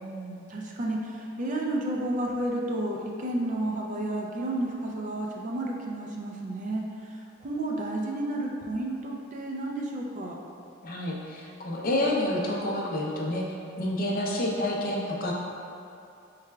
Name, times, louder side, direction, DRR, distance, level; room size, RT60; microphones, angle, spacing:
voice 1, 0.0-10.4, right 1 dB, 40° right, -1 dB, 0.4 m, -31 dB
voice 2, 10.8-13.5 13.8-15.3, left 1 dB, 45° left, -2 dB, 0.5 m, -28 dB
4.7 x 3.2 x 2.2 m, 2.6 s
head